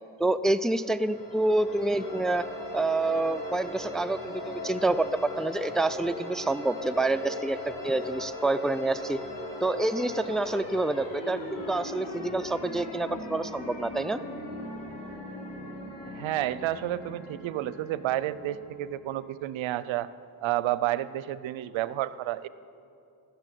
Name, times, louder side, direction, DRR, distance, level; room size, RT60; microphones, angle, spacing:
voice 1, 0.2-2.5 2.7-9.2 9.6-14.2, right 2 dB, ahead, 10 dB, 0.4 m, -27 dB
sound 1, 0.7-19.3, left 1 dB, 60° left, 4.4 m, -39 dB
voice 2, 16.1-20.1 20.4-22.5, right 14 dB, 75° right, 17 dB, 0.6 m, -30 dB
16.5 x 7.0 x 9.1 m, 2.6 s
supercardioid pair, 55°, 47 cm